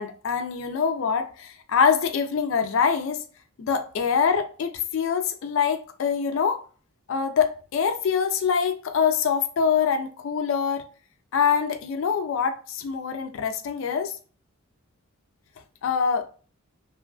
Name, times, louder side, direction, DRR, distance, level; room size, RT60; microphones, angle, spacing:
voice 1, 0.0-3.2 3.6-6.6 7.1-10.9 11.3-14.2 15.8-16.3, left 6 dB, 60° left, 0.3 m, -24 dB
2.9 x 2.4 x 2.3 m
head